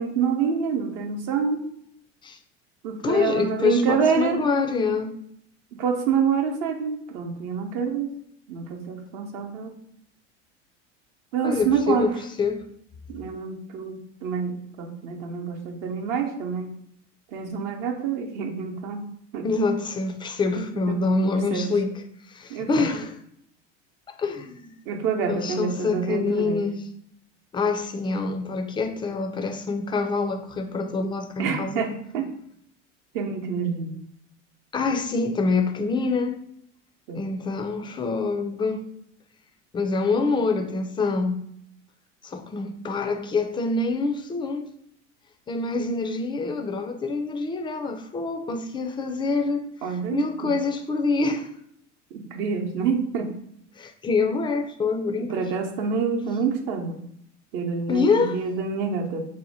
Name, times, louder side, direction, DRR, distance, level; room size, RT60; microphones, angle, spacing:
voice 1, 0.0-1.6 2.8-4.4 5.8-8.1 8.5-9.7 11.3-12.1 13.1-16.7 17.3-19.0 19.3-19.5 20.6-21.0 21.2-21.7 22.5-22.9 24.9-26.6 31.4-32.2 33.1-34.0 37.1-37.2 49.8-50.5 52.1-53.3 55.2-57.0 57.5-59.2, right 6 dB, 60° right, 3 dB, 0.8 m, -27 dB
voice 2, 3.0-5.2 11.4-12.1 12.4-12.7 19.4-22.0 22.3-23.1 24.1-24.7 25.3-26.8 27.5-31.8 34.7-36.4 37.1-38.9 39.7-41.4 42.2-44.7 45.5-51.5 53.8-55.5 57.9-58.4, left 4 dB, 15° left, 5 dB, 0.3 m, -26 dB
2.8 x 2.1 x 4.1 m, 0.72 s
hypercardioid pair, 90°, 36 cm